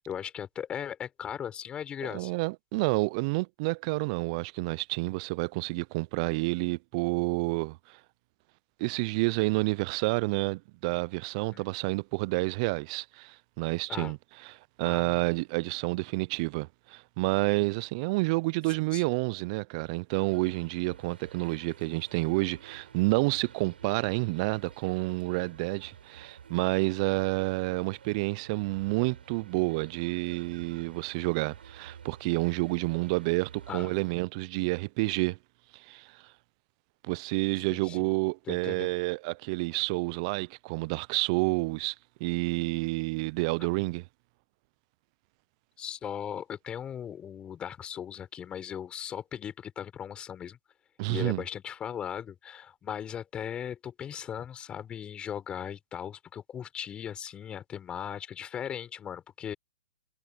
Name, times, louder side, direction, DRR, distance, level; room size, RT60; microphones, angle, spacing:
voice 1, 0.0-2.3 11.5-11.6 13.9-14.1 14.8-15.2 18.9-19.0 33.7-34.0 37.7-38.1 38.5-38.9 43.6-43.7 45.8-50.6 51.1-59.5, left 9 dB, 20° left, 4.2 m, -38 dB
voice 2, 2.1-7.8 8.8-14.2 14.8-35.4 35.9-36.1 37.0-41.9 42.2-44.0 51.0-51.4, right 26 dB, 40° right, 0.5 m, -29 dB
sound 1, 20.1-34.1, right 7 dB, 75° right, 7.4 m, -51 dB
hypercardioid pair, 135°, 5 cm